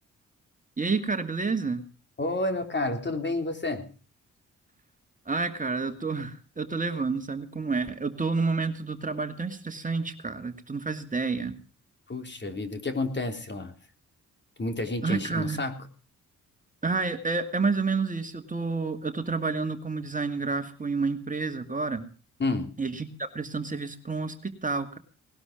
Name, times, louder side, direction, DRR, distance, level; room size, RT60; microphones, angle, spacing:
voice 1, 0.8-1.9 5.3-11.6 15.0-15.6 16.8-22.1 22.8-25.0, right 4 dB, 25° right, 7 dB, 2.4 m, -29 dB
voice 2, 2.2-3.9 12.1-13.7 14.6-15.9 22.4-22.7, left 2 dB, 35° left, 7 dB, 3.5 m, -30 dB
19.5 x 12.0 x 5.2 m, 0.39 s
cardioid pair, 75°, 31 cm